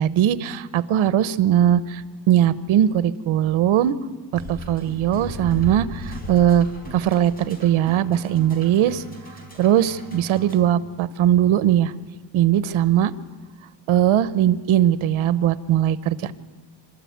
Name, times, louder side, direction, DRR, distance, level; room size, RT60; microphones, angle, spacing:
voice 1, 0.0-3.9 4.3-9.0 9.6-11.9 12.3-13.1 13.9-16.3, right 11 dB, 90° right, 16 dB, 1.0 m, -20 dB
sound 1, 4.3-10.6, equal, 20° left, 4.6 m, -37 dB
27.0 x 13.0 x 9.5 m, 1.5 s
cardioid pair, 150°, 46 cm